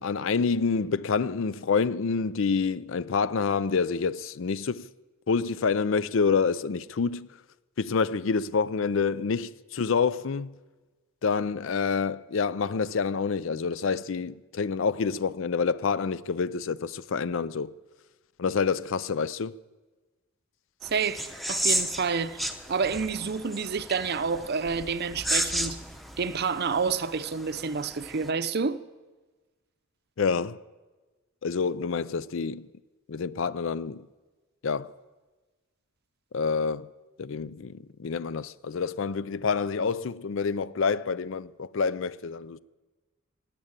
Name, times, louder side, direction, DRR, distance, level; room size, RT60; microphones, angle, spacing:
voice 1, 0.0-4.9 5.3-7.3 7.8-10.5 11.2-17.7 18.4-19.5 30.2-30.6 31.4-32.7 33.1-34.1 34.6-34.9 36.3-36.9 37.2-42.6, left 5 dB, 60° left, 0.5 m, -27 dB
sound 1, 20.8-28.3, right 1 dB, ahead, 0.8 m, -33 dB
voice 2, 20.8-25.8 26.2-28.8, right 5 dB, 50° right, 0.6 m, -29 dB
16.0 x 9.8 x 8.9 m
head